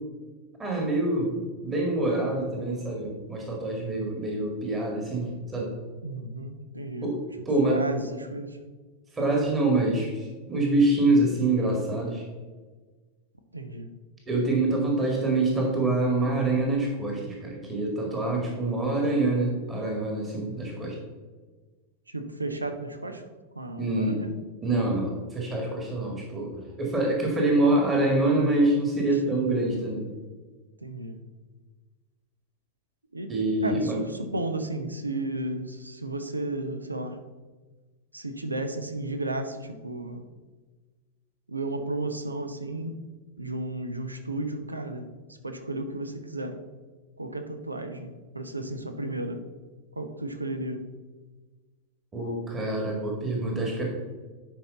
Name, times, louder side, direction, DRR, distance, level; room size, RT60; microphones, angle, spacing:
voice 1, 0.6-5.7 7.0-7.2 7.5-7.8 9.1-12.2 14.3-20.9 23.8-24.2 24.6-30.1 33.3-34.0 52.1-53.8, right 2 dB, 20° right, 0 dB, 1.9 m, -25 dB
voice 2, 6.0-7.2 7.6-8.6 13.5-13.9 22.1-23.3 23.5-24.3 29.1-29.2 30.8-31.2 33.1-33.3 33.6-37.2 38.1-40.3 41.5-43.1 43.4-46.6 47.2-49.4 50.0-50.9, right 2 dB, 80° right, 7 dB, 0.7 m, -33 dB
11.0 x 4.8 x 3.9 m, 1.3 s
figure-of-eight pair, 90°, 0 cm